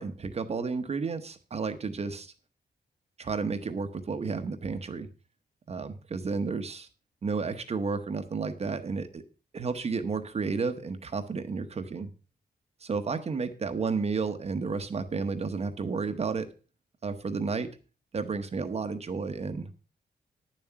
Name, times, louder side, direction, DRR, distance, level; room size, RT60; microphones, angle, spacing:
voice 1, 0.0-2.3 3.2-5.1 5.7-6.9 7.2-9.2 9.5-12.1 12.8-16.5 17.0-17.7 18.1-19.7, right 4 dB, 40° right, 8 dB, 0.9 m, -32 dB
10.0 x 7.4 x 5.7 m, 0.35 s
wide cardioid pair, 170°, 17 cm